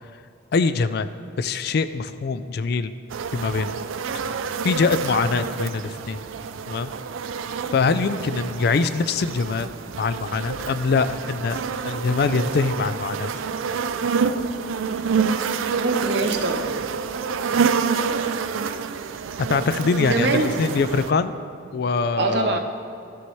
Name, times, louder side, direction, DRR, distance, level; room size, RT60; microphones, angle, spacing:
voice 1, 0.5-1.1 1.4-2.9 3.3-3.7 4.6-6.2 6.7-6.9 7.7-9.7 10.0-13.3 19.5-21.3 21.7-22.6, left 4 dB, 55° left, 12 dB, 0.3 m, -23 dB
sound 1, 3.1-21.1, right 6 dB, 90° right, 0.4 m, -28 dB
voice 2, 15.6-16.7 20.0-20.5 22.2-22.6, right 3 dB, 60° right, 4 dB, 0.7 m, -24 dB
13.0 x 7.0 x 3.1 m, 2.5 s
head